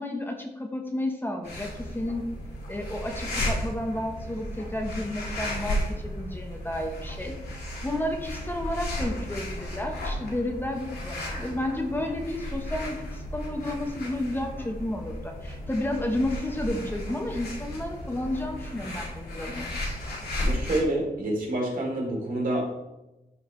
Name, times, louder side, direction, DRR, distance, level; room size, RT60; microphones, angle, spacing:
voice 1, 0.0-2.3 2.7-7.4 7.8-19.7, left 1 dB, 15° left, 3 dB, 0.8 m, -31 dB
sound 1, 1.4-20.8, left 1 dB, 90° left, 2.0 m, -34 dB
voice 2, 20.4-22.8, right 1 dB, 65° right, -3 dB, 3.0 m, -28 dB
12.0 x 5.0 x 3.1 m, 0.97 s
wide cardioid pair, 145°, 16 cm